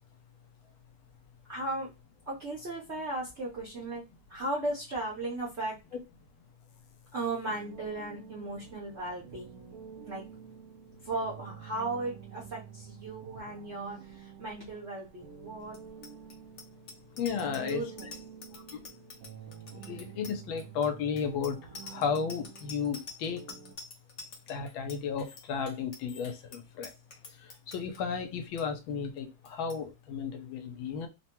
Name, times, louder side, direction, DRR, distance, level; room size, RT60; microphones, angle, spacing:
voice 1, 1.5-1.9 2.3-4.0 4.3-5.8 7.1-9.7 10.0-10.2 11.0-15.8 17.4-18.2, right 2 dB, 55° right, 0.8 m, -36 dB
sound 1, 7.5-23.8, right 8 dB, 85° right, 0.8 m, -49 dB
Bicycle bell, 15.7-28.0 28.3-28.6 28.9-29.2 29.4-29.8, left 3 dB, 60° left, 0.7 m, -48 dB
voice 2, 17.1-17.8 18.5-18.8 19.9-23.4 24.5-26.9 27.3-31.1, left 6 dB, 80° left, 1.4 m, -34 dB
3.6 x 2.1 x 2.9 m
omnidirectional pair, 2.2 m